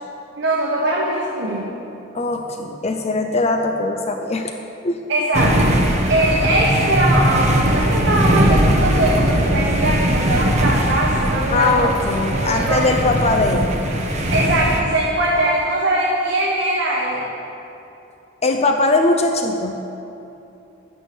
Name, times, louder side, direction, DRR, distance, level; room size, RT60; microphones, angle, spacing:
voice 1, 0.4-1.7 5.1-5.8 6.1-11.9 12.3-12.9 14.3-17.3, right 1 dB, 65° right, -4 dB, 1.5 m, -21 dB
voice 2, 2.1-4.5 4.8-5.0 11.5-13.8 18.4-19.8, left 2 dB, 30° left, 4 dB, 0.6 m, -20 dB
sound 1, 5.3-14.8, right 1 dB, 35° right, 1.2 m, -19 dB
11.5 x 9.0 x 6.2 m, 2.9 s
head